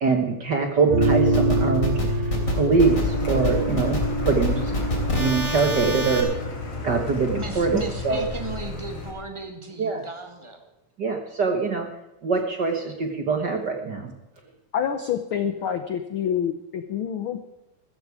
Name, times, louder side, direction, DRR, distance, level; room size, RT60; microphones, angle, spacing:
voice 1, 0.0-4.7 5.1-6.3 6.8-8.2 9.8-10.0 11.0-11.9 12.2-14.1, right 4 dB, 50° right, 4 dB, 1.4 m, -24 dB
sound 1, 0.9-6.5, right 2 dB, 85° right, 4.0 m, -26 dB
sound 2, 1.0-6.2, left 1 dB, 25° left, 3.4 m, -28 dB
Car, 2.8-9.1, left 3 dB, 55° left, 4.2 m, -32 dB
voice 2, 7.3-10.6, right 3 dB, 15° right, 5 dB, 0.9 m, -35 dB
voice 3, 14.7-17.4, left 8 dB, 70° left, 8 dB, 1.2 m, -27 dB
15.0 x 14.0 x 4.9 m, 0.97 s
omnidirectional pair, 3.5 m